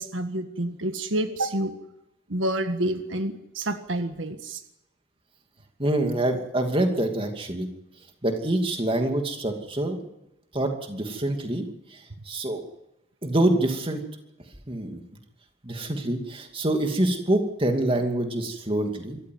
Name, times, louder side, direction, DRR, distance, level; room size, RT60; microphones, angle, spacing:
voice 1, 0.0-1.7 2.3-4.6, right 1 dB, 75° right, 7 dB, 1.7 m, -28 dB
voice 2, 5.8-7.7 8.2-10.0 10.5-12.6 13.2-14.0 14.7-15.0 15.6-19.2, right 1 dB, 25° right, 5 dB, 2.6 m, -26 dB
25.0 x 14.5 x 9.4 m, 0.89 s
head